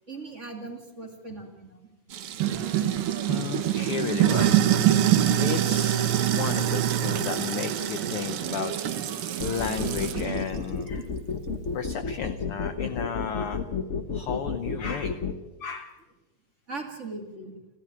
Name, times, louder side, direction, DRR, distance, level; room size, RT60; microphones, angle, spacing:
voice 1, 0.1-1.8 16.7-17.6, right 3 dB, 25° right, 3 dB, 2.2 m, -39 dB
Sink (filling or washing), 2.1-10.3, right 10 dB, 65° right, 1.4 m, -27 dB
sound 1, 2.4-10.4, right 11 dB, 90° right, 3.0 m, -28 dB
voice 2, 2.7-4.6 5.4-8.7 9.4-11.1 11.7-13.6 14.1-15.2 15.6-15.9 16.9-17.0, left 7 dB, 70° left, 10 dB, 1.3 m, -34 dB
sound 2, 9.4-15.3, left 4 dB, 45° left, 0.9 m, -31 dB
29.5 x 13.0 x 8.8 m, 1.1 s
omnidirectional pair, 3.7 m